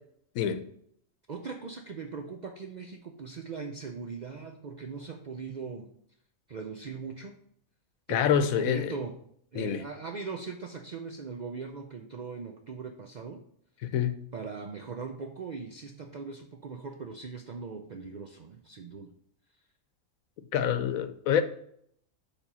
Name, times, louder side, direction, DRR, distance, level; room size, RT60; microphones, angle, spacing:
voice 1, 1.3-5.9 6.5-7.4 8.1-9.2 9.5-13.4 13.8-13.9 14.3-19.1, right 5 dB, 65° right, 0.4 m, -40 dB
voice 2, 8.1-8.9 9.5-9.8 13.9-14.1 20.5-21.4, left 8 dB, 80° left, 1.1 m, -26 dB
7.2 x 3.5 x 5.5 m
omnidirectional pair, 1.4 m